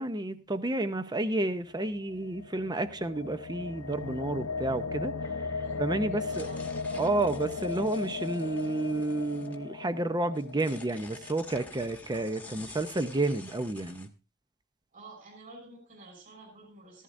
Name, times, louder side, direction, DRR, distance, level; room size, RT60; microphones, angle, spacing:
voice 1, 0.0-5.1 5.6-6.5 7.0-14.1, right 2 dB, 20° right, 0.7 m, -31 dB
sound 1, 1.7-11.9, left 4 dB, 65° left, 0.8 m, -37 dB
voice 2, 5.6-7.2 14.9-17.0, right 2 dB, 40° right, 5.2 m, -51 dB
sound 2, 6.3-9.6 10.1-14.1, left 3 dB, 10° left, 1.3 m, -49 dB
14.5 x 14.5 x 2.6 m
head